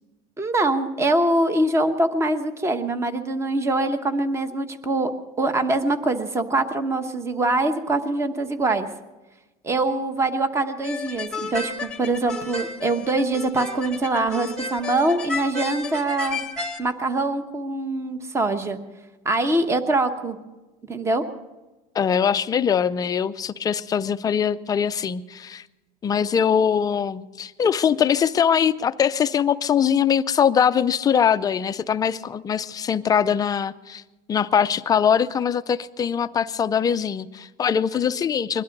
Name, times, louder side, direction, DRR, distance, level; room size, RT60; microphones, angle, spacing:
voice 1, 0.4-5.1 5.4-8.9 9.6-16.4 16.8-18.8 19.2-20.4 20.9-21.2, right 2 dB, 15° right, 9 dB, 1.0 m, -23 dB
sound 1, 10.8-16.8, left 3 dB, 5° left, 1.2 m, -32 dB
voice 2, 21.9-25.6 26.0-34.0 34.3-38.6, left 7 dB, 20° left, 11 dB, 0.5 m, -22 dB
21.5 x 12.5 x 5.3 m, 1.1 s
cardioid pair, 145°, 19 cm